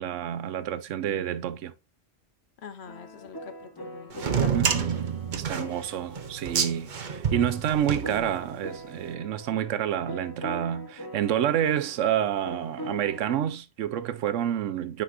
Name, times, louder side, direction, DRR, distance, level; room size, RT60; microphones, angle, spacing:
voice 1, 0.0-1.7 4.5-4.9 5.3-15.0, right 10 dB, 85° right, 1.0 m, -28 dB
voice 2, 2.6-4.6 5.4-5.9, left 7 dB, 65° left, 1.0 m, -44 dB
sound 1, 2.9-13.5, equal, 25° left, 0.6 m, -42 dB
sound 2, 4.1-8.7, right 7 dB, 45° right, 0.8 m, -28 dB
9.4 x 4.2 x 2.6 m
omnidirectional pair, 1.2 m